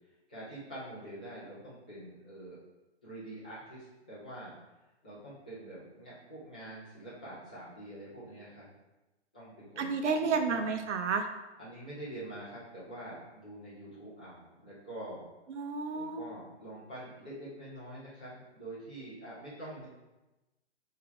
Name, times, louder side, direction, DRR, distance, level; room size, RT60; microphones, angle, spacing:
voice 1, 0.3-2.6 3.0-4.5 5.0-8.7 9.3-10.7 11.6-15.2 15.9-19.8, right 1 dB, 10° left, -12 dB, 0.3 m, -45 dB
voice 2, 9.8-11.3 15.5-16.2, right 5 dB, 85° right, 6 dB, 0.7 m, -31 dB
3.9 x 2.7 x 4.4 m, 1.1 s
hypercardioid pair, 160°, 35 cm